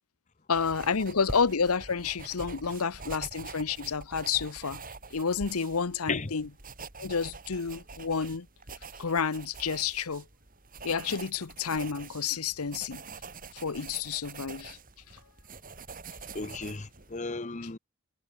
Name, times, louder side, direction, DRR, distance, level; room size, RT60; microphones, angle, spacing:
voice 1, 0.5-4.8 5.1-6.5 7.0-8.5 9.0-10.2 10.8-13.0 13.5-14.8, left 5 dB, 85° left, 0.9 m, -30 dB
sound 1, 0.5-17.2, right 4 dB, 40° right, 3.8 m, -45 dB
voice 2, 16.3-17.8, left 3 dB, 35° left, 0.9 m, -34 dB
head